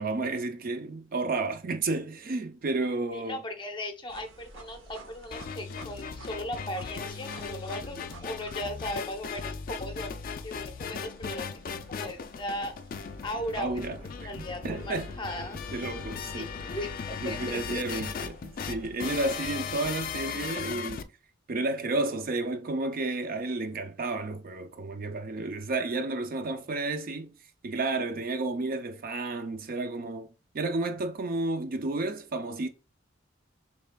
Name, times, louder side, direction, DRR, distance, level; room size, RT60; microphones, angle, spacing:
voice 1, 0.0-3.4 13.6-15.1 15.7-16.5 17.2-21.1 21.5-27.3 27.6-30.3 30.5-32.7, right 2 dB, 45° right, 0.4 m, -31 dB
voice 2, 3.1-10.1 10.4-12.7 13.2-13.8 14.2-15.6 16.3-18.0, left 1 dB, 25° left, 0.7 m, -37 dB
sound 1, 4.1-19.7, right 2 dB, 90° right, 0.9 m, -52 dB
sound 2, 5.3-21.0, left 6 dB, 45° left, 0.3 m, -38 dB
6.6 x 3.2 x 2.2 m
head